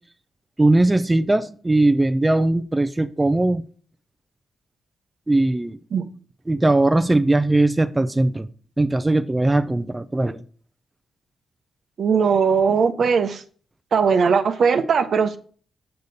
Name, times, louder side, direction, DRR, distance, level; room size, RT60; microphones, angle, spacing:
voice 1, 0.6-3.6 5.3-5.8 6.5-8.5 8.8-10.4, right 2 dB, 20° right, 0.6 m, -19 dB
voice 2, 12.0-13.4 13.9-15.4, right 6 dB, 65° right, 0.8 m, -19 dB
6.7 x 6.7 x 4.1 m
cardioid pair, 60°, 0 cm